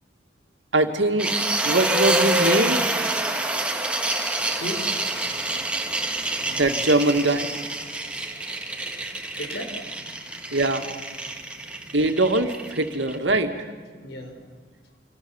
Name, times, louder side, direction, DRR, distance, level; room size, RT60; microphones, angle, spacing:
voice 1, 0.7-1.4 1.6-2.8 6.5-7.5 10.5-11.0 11.9-13.5, right 2 dB, 80° right, 5 dB, 2.3 m, -22 dB
sound 1, 1.2-13.1, right 2 dB, 5° right, 1.8 m, -27 dB
voice 2, 4.5-5.3 5.8-6.0 6.4-6.5 9.1-9.8 10.2-10.4 11.8-11.9 14.0-14.3, equal, 65° left, 5 dB, 4.9 m, -36 dB
27.5 x 27.0 x 7.3 m, 1.5 s
head